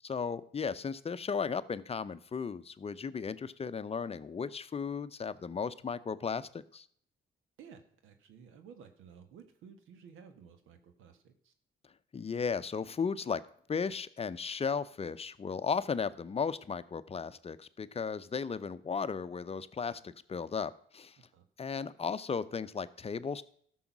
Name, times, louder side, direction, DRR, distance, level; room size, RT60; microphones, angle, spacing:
voice 1, 0.1-6.9 12.1-13.4 13.7-21.2 21.6-23.4, left 5 dB, 30° left, 14 dB, 0.6 m, -35 dB
voice 2, 7.6-11.5 21.2-21.5, right 7 dB, 85° right, 8 dB, 1.4 m, -55 dB
13.0 x 6.4 x 6.0 m, 0.62 s
cardioid pair, 90°, 20 cm